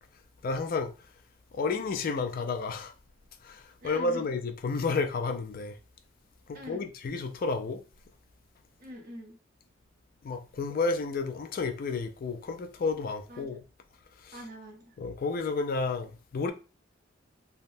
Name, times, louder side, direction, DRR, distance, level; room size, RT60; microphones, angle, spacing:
voice 1, 0.4-0.9 1.5-2.9 3.4-5.8 6.5-7.8 10.2-13.6 14.2-14.4 15.0-16.5, left 4 dB, 45° left, 0.3 m, -31 dB
voice 2, 3.8-4.2 6.5-6.9 8.8-9.4 13.3-13.6 14.3-15.0, equal, 45° right, 0.8 m, -44 dB
3.3 x 2.1 x 2.6 m
head